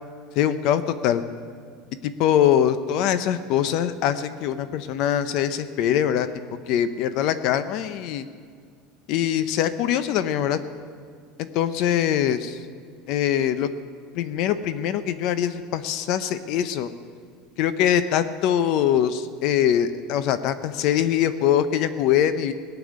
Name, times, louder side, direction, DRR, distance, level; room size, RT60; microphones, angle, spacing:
voice 1, 0.4-1.2 2.0-6.3 6.7-8.3 9.1-10.6 11.4-12.6 13.1-13.7 14.1-16.9 17.6-22.5, left 10 dB, 55° left, 12 dB, 0.7 m, -23 dB
18.0 x 7.0 x 9.4 m, 2.1 s
supercardioid pair, 150°, 0 cm